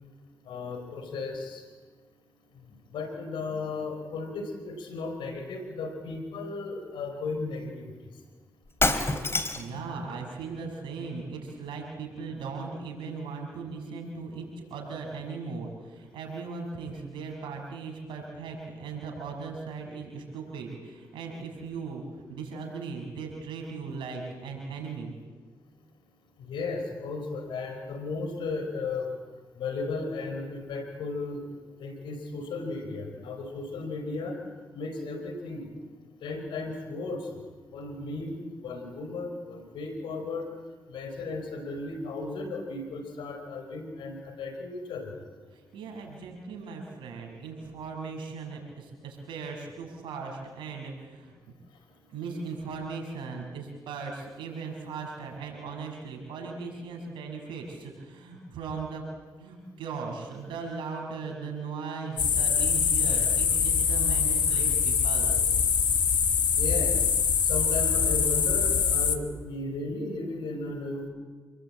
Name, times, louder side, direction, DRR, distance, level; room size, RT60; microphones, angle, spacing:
voice 1, 0.5-1.6 2.9-7.9 9.7-10.2 26.4-29.1 29.6-31.5 31.8-34.4 34.7-35.7 36.2-37.2 37.7-40.5 40.9-45.2 66.5-67.0 67.4-71.1, left 3 dB, 85° left, 6 dB, 4.7 m, -35 dB
Shatter, 8.7-9.8, left 2 dB, 30° left, 3.4 m, -26 dB
voice 2, 9.6-22.0 22.3-25.1 45.5-51.3 52.1-59.0 59.4-65.4, right 4 dB, 90° right, 1 dB, 6.4 m, -38 dB
sound 1, 62.2-69.2, left 6 dB, 70° left, 2.0 m, -24 dB
28.0 x 20.5 x 8.8 m, 1.4 s
supercardioid pair, 50°, 8 cm